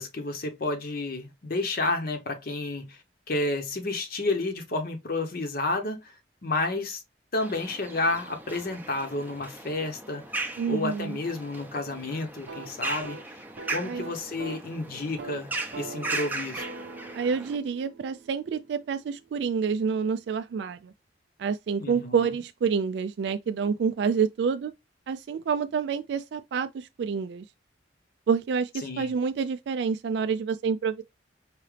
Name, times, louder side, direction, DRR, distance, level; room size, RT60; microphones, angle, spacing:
voice 1, 0.0-3.0 3.3-6.1 6.4-7.0 7.3-10.2 10.7-13.4 13.7-16.7 21.8-22.3 28.8-29.1, left 2 dB, 55° left, 0.8 m, -31 dB
sound 1, 7.4-17.6, right 2 dB, 10° right, 0.6 m, -37 dB
voice 2, 10.6-11.2 13.8-14.1 17.1-20.9 21.4-24.7 25.1-27.4 28.3-31.0, right 6 dB, 65° right, 0.3 m, -28 dB
sound 2, 12.3-14.7 15.0-15.4 15.7-19.6, right 3 dB, 80° right, 0.8 m, -44 dB
4.8 x 2.8 x 3.2 m
head